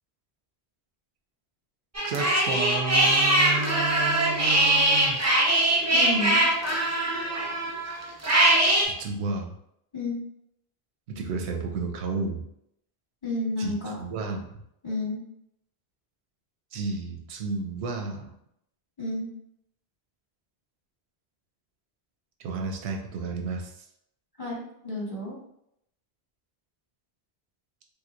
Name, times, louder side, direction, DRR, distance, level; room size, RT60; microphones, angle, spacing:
sound 1, 1.9-8.8, right 1 dB, 30° right, 0.3 m, -22 dB
voice 1, 2.1-5.2 8.8-9.5 11.1-12.5 13.6-14.5 16.7-18.3 22.4-23.7, right 3 dB, 90° right, 3 dB, 0.9 m, -32 dB
voice 2, 5.9-6.4 9.9-10.2 13.2-14.0 14.8-15.2 19.0-19.3 24.4-25.3, left 1 dB, 25° left, -6 dB, 1.0 m, -31 dB
3.4 x 2.9 x 2.5 m, 0.76 s
omnidirectional pair, 1.1 m